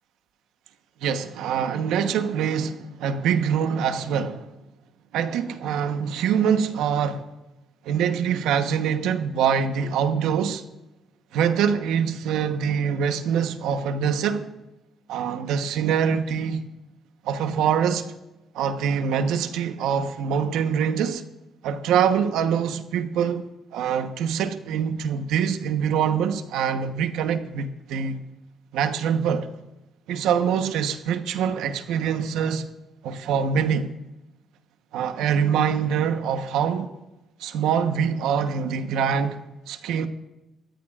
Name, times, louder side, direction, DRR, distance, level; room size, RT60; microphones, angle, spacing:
voice 1, 1.0-4.5 5.1-7.3 7.8-10.6 11.3-14.5 15.1-16.7 17.2-18.1 18.5-21.2 21.6-23.4 23.7-28.2 28.7-29.5 30.1-32.7 33.0-33.9 34.9-36.9 37.4-40.1, right 7 dB, 90° right, 1.0 m, -24 dB
21.5 x 14.5 x 2.5 m
cardioid pair, 90°, 0 cm